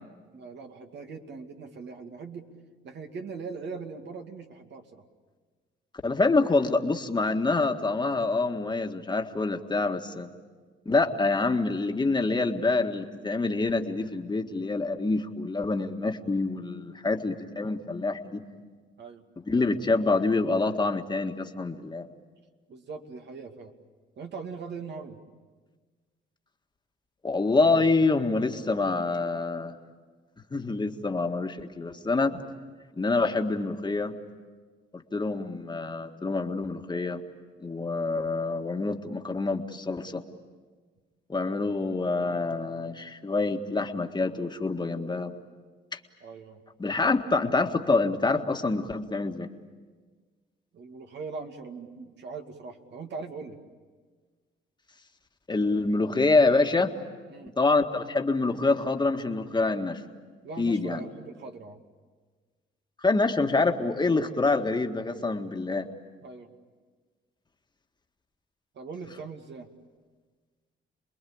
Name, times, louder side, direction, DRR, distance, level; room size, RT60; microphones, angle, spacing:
voice 1, 0.3-2.5 2.8-5.0 19.0-19.2 22.7-23.7 24.2-25.2 41.4-41.5 46.2-46.6 50.7-53.6 57.3-57.5 60.4-61.8 66.2-66.5 68.7-69.7, right 4 dB, 60° right, 4 dB, 2.4 m, -40 dB
voice 2, 6.0-10.3 10.9-18.4 19.5-22.1 27.2-29.8 30.5-32.4 33.0-34.1 34.9-37.2 37.6-40.2 41.3-45.3 45.9-46.0 46.8-49.5 55.5-56.9 57.6-60.0 60.6-61.0 63.0-65.9, left 3 dB, 20° left, 4 dB, 1.8 m, -26 dB
28.5 x 21.5 x 8.8 m, 1.5 s
cardioid pair, 90°, 20 cm